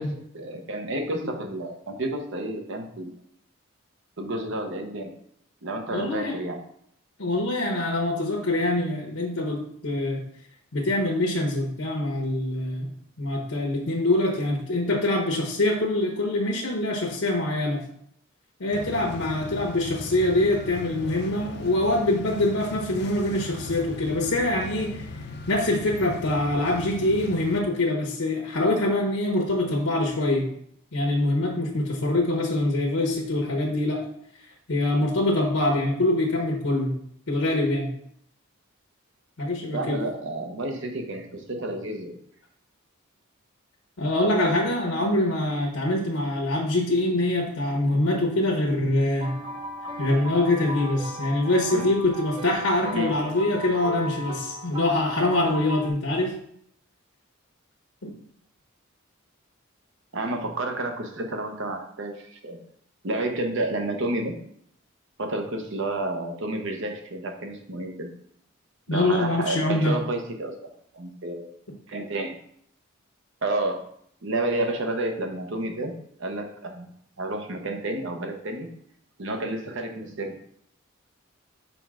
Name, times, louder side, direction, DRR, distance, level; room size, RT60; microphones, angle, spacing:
voice 1, 0.0-3.1 4.2-5.1 5.6-6.6 39.7-42.2 51.6-51.9 52.9-53.1 60.1-62.6 63.0-64.4 65.2-68.1 68.9-70.6 70.9-71.5 71.9-72.4 73.4-73.8 74.2-75.9 76.2-76.9 77.2-78.7 79.2-80.3, right 2 dB, 65° right, 4 dB, 1.0 m, -30 dB
voice 2, 5.9-6.4 7.2-10.2 10.7-12.9 13.2-17.8 18.6-25.1 25.5-30.5 30.9-34.0 34.7-36.9 37.3-37.9 39.4-40.0 44.0-49.4 50.0-56.4 58.0-58.1 68.9-70.0, left 1 dB, 80° left, -1 dB, 1.1 m, -24 dB
sound 1, 18.7-27.6, left 2 dB, 50° left, 0.6 m, -38 dB
sound 2, 49.2-55.9, left 1 dB, 25° right, 0.7 m, -36 dB
5.4 x 5.4 x 3.7 m, 0.68 s
head